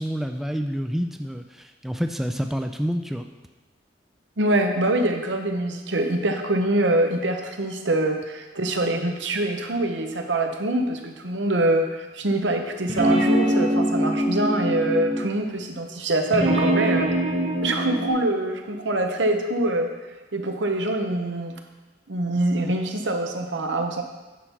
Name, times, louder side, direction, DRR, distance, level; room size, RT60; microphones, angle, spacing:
voice 1, 0.0-3.3, equal, ahead, 6 dB, 0.3 m, -28 dB
voice 2, 4.4-17.1 17.6-19.9 20.3-21.5 22.1-24.0, right 1 dB, 85° right, 4 dB, 1.0 m, -24 dB
sound 1, 12.8-15.3 16.3-18.1, right 1 dB, 35° right, 1.4 m, -23 dB
10.0 x 5.7 x 4.6 m, 1.2 s
head